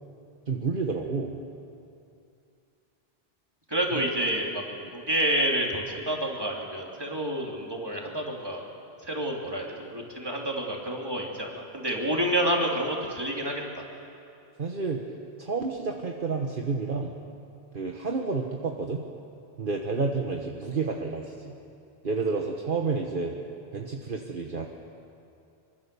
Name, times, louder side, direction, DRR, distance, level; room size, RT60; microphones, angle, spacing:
voice 1, 0.5-1.4 3.9-4.0 4.8-4.9 14.6-15.1 15.4-17.1 17.7-19.0 19.6-21.5 22.0-23.3 23.7-24.7, right 4 dB, 55° right, 1 dB, 1.5 m, -30 dB
voice 2, 3.7-4.6 4.9-8.6 9.0-13.8, right 1 dB, 20° right, -1 dB, 3.3 m, -29 dB
24.0 x 24.0 x 7.0 m, 2.6 s
omnidirectional pair, 1.1 m